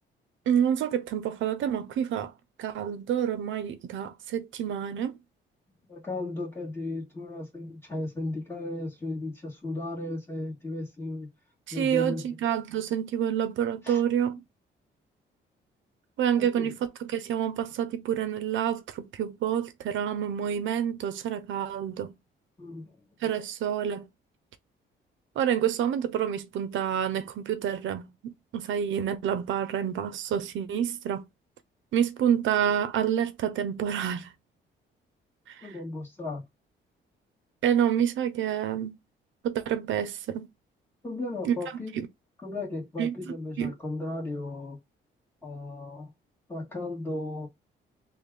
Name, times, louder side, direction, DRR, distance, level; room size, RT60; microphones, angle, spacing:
voice 1, 0.5-2.3 2.6-5.1 11.7-14.4 16.2-16.8 17.0-22.1 23.2-24.1 25.4-31.2 31.9-34.3 35.5-35.7 37.6-39.0 39.4-40.5 41.4-41.6 41.9-42.1 43.0-43.1 43.6-43.7, right 9 dB, 75° right, 0.7 m, -28 dB
voice 2, 5.9-11.3 11.7-12.3 13.8-14.0 16.4-16.7 22.6-23.0 35.6-36.5 41.0-42.0 42.4-44.8 45.4-46.1 46.5-47.5, left 2 dB, 10° left, 1.9 m, -35 dB
3.3 x 2.4 x 3.8 m
cardioid pair, 90°, 20 cm